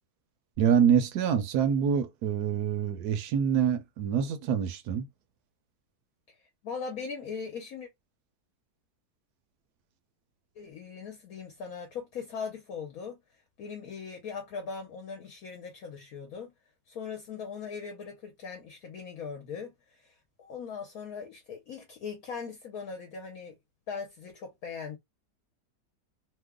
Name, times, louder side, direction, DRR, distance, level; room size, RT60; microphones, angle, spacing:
voice 1, 0.6-5.1, right 8 dB, 75° right, 1.1 m, -26 dB
voice 2, 6.3-7.9 10.5-13.2 13.6-16.5 16.9-23.5 23.9-25.0, left 5 dB, 65° left, 1.1 m, -40 dB
3.0 x 2.2 x 3.5 m
omnidirectional pair, 1.8 m